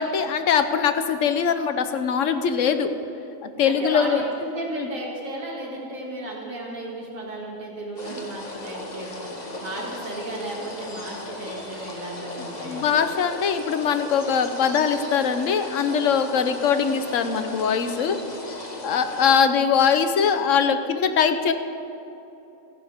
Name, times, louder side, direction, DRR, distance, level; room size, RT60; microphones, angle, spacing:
voice 1, 0.0-2.9 3.4-4.2 4.7-4.9 12.6-18.2 18.8-21.5, left 7 dB, 65° left, 9 dB, 1.2 m, -22 dB
voice 2, 3.6-9.2 9.6-13.0, right 1 dB, 70° right, -3 dB, 2.9 m, -34 dB
sound 1, 8.0-19.4, left 1 dB, 30° left, 1.6 m, -36 dB
27.5 x 10.5 x 3.6 m, 3.0 s
omnidirectional pair, 1.5 m